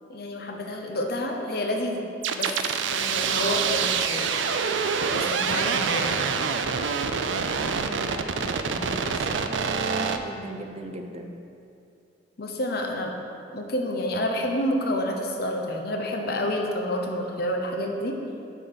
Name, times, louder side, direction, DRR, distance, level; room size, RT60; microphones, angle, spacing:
voice 1, 0.1-2.0 2.3-2.5 2.9-4.5 5.1-6.5 12.4-13.1 13.5-18.2, left 1 dB, 55° left, 2 dB, 0.9 m, -29 dB
sound 1, 2.2-10.2, right 6 dB, 85° right, 0.5 m, -26 dB
voice 2, 7.7-11.3, right 1 dB, 35° right, 4 dB, 0.6 m, -38 dB
9.9 x 4.0 x 6.8 m, 2.6 s
head